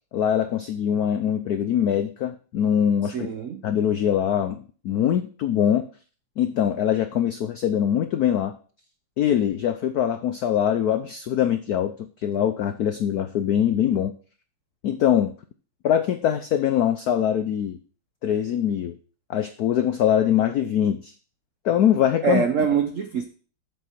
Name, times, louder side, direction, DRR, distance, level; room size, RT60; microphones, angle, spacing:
voice 1, 0.1-3.3 3.6-4.6 4.8-5.9 6.4-8.5 9.2-11.9 12.2-14.1 14.8-15.3 15.8-17.8 18.2-19.0 19.3-21.1 21.6-22.4, left 9 dB, 90° left, 0.8 m, -23 dB
voice 2, 3.1-3.6 22.2-23.2, right 6 dB, 90° right, 0.6 m, -24 dB
7.8 x 7.8 x 4.4 m
omnidirectional pair, 2.4 m